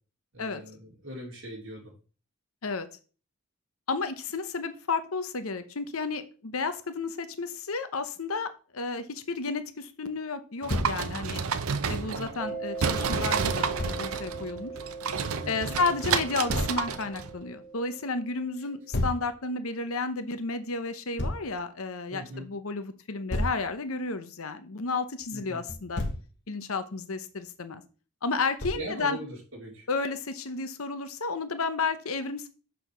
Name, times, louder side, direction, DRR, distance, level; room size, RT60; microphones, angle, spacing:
voice 1, 0.3-1.8 12.0-12.3 15.4-15.8 22.1-22.5 25.3-25.6 28.7-29.8, right 1 dB, 60° right, -3 dB, 3.4 m, -40 dB
voice 2, 3.9-11.4 11.9-14.7 15.5-26.0 26.5-27.8 28.2-29.2 29.9-32.5, left 4 dB, 75° left, 10 dB, 0.9 m, -32 dB
sound 1, 10.6-12.5 12.8-17.3, right 5 dB, 75° right, 0.7 m, -30 dB
Thump thud, 10.7-11.0 13.8-14.0 16.5-16.8 18.9-19.2 21.2-21.5 23.3-23.6 25.7-26.3 28.6-28.9, left 1 dB, 50° left, 1.2 m, -30 dB
Mallet percussion, 12.4-18.8, right 4 dB, ahead, 1.0 m, -40 dB
6.3 x 5.1 x 6.0 m, 0.37 s
head